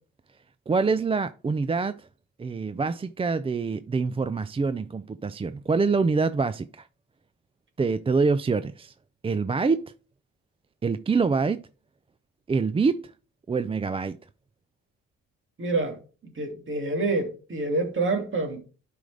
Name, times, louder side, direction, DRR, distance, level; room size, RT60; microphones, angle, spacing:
voice 1, 0.7-2.1 2.4-6.9 7.8-8.9 9.2-9.9 10.8-11.6 12.5-13.1 13.5-14.2, right 4 dB, 20° right, 0.4 m, -25 dB
voice 2, 15.6-16.0 16.4-18.6, right 3 dB, 40° right, 2.6 m, -27 dB
11.5 x 5.0 x 3.4 m
cardioid pair, 90°, 30 cm